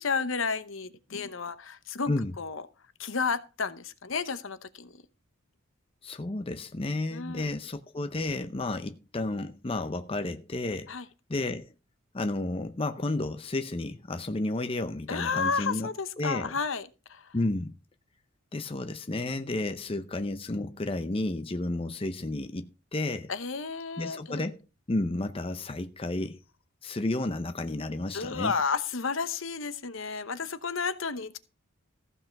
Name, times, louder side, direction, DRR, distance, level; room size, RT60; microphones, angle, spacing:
voice 1, 0.0-2.6 3.0-4.9 7.1-7.5 10.9-11.1 15.1-17.3 23.3-24.5 28.1-31.4, left 5 dB, 65° left, 0.9 m, -32 dB
voice 2, 6.0-10.9 11.3-11.7 12.1-15.9 16.2-16.5 17.3-17.8 18.5-23.3 24.0-24.6 24.9-26.4 26.8-28.6, left 2 dB, 25° left, 0.6 m, -32 dB
14.5 x 5.6 x 5.8 m
head